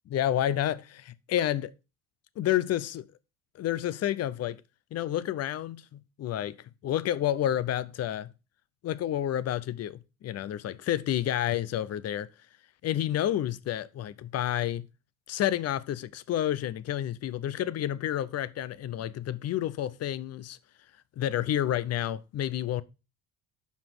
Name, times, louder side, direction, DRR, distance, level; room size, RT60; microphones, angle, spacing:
voice 1, 0.1-1.7 2.4-3.1 3.5-4.6 4.9-6.6 6.8-8.3 8.8-12.3 12.8-14.9 15.3-20.6 21.2-22.8, left 11 dB, 45° left, 0.6 m, -30 dB
5.7 x 5.0 x 5.9 m
cardioid pair, 115°, 37 cm